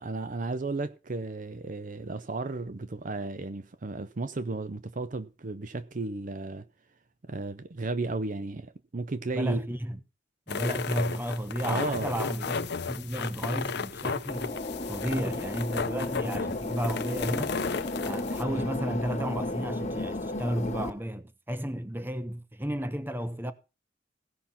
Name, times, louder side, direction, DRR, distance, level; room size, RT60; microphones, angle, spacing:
voice 1, 0.0-6.6 7.3-9.6 11.7-12.1, right 3 dB, 45° right, 0.6 m, -34 dB
voice 2, 9.3-10.0 10.5-14.6 14.9-17.6 18.0-23.5, equal, 10° right, 1.0 m, -33 dB
sound 1, 10.5-18.4, left 5 dB, 60° left, 0.7 m, -34 dB
sound 2, 14.3-20.9, left 2 dB, 35° left, 1.9 m, -34 dB
16.5 x 5.9 x 5.6 m
head